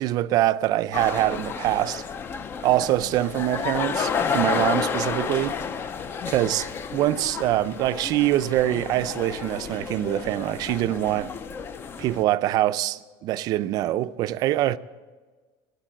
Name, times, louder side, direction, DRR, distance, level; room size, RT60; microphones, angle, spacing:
voice 1, 0.0-2.0 2.6-5.6 6.3-11.3 12.0-14.8, right 14 dB, 40° right, 0.4 m, -24 dB
sound 1, 0.9-12.2, left 6 dB, 20° left, 0.4 m, -31 dB
20.5 x 8.2 x 7.6 m
cardioid pair, 165°, 10 cm